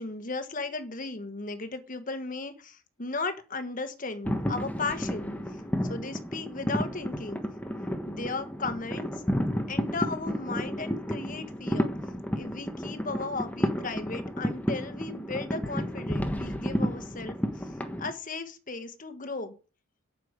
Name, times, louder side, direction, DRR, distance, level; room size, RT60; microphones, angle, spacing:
voice 1, 0.0-7.4 8.1-9.2 9.7-11.9 12.3-17.7 18.0-19.5, left 3 dB, 40° left, 1.4 m, -36 dB
sound 1, 4.2-18.1, equal, 10° left, 1.2 m, -32 dB
8.8 x 6.9 x 8.1 m
head